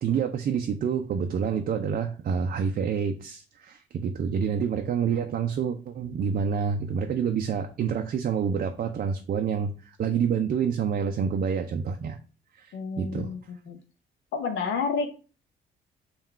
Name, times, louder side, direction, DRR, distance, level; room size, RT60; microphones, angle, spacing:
voice 1, 0.0-12.2 12.5-13.3, right 7 dB, 45° right, 6 dB, 0.4 m, -28 dB
voice 2, 12.7-13.8 14.3-15.1, left 5 dB, 80° left, 5 dB, 0.5 m, -30 dB
3.7 x 2.3 x 4.2 m, 0.36 s
cardioid pair, 90°, 20 cm